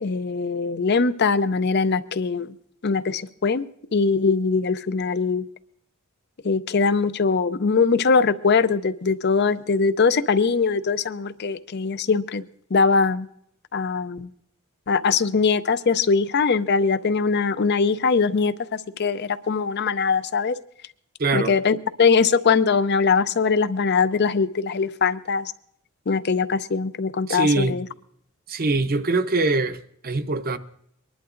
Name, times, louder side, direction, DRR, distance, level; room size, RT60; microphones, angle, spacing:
voice 1, 0.0-2.5 2.8-3.7 3.9-5.4 6.4-12.4 12.7-13.3 13.7-14.3 14.9-20.6 21.3-25.5 26.1-27.8, left 5 dB, 50° left, 0.6 m, -21 dB
voice 2, 21.2-21.5 27.3-27.8 28.5-30.6, right 3 dB, 45° right, 0.7 m, -23 dB
24.5 x 11.5 x 2.5 m
head